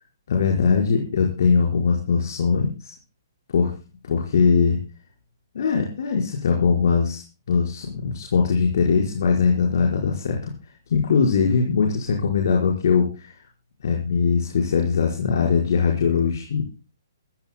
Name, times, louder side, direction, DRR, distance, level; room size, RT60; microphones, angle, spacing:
voice 1, 0.3-2.9 3.5-3.7 4.0-4.8 5.6-7.2 7.5-13.4 13.8-16.6, left 5 dB, 60° left, 0 dB, 5.1 m, -21 dB
22.5 x 16.0 x 2.3 m, 0.31 s
hypercardioid pair, 165°, 2 cm